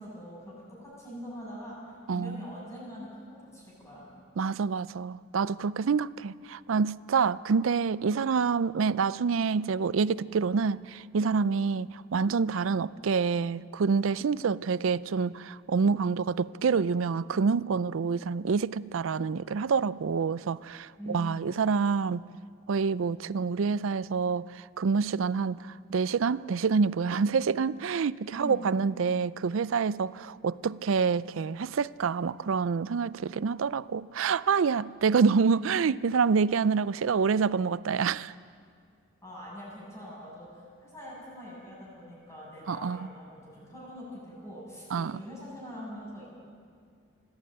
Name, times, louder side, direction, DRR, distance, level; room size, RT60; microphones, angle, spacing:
voice 1, 0.0-4.1 21.0-21.4 28.3-28.7 39.2-46.2, equal, 15° left, 7.8 m, -43 dB
voice 2, 2.1-2.4 4.4-22.3 22.7-38.3 42.7-43.1 44.9-45.2, right 5 dB, 70° right, 0.4 m, -27 dB
20.5 x 14.5 x 8.9 m
head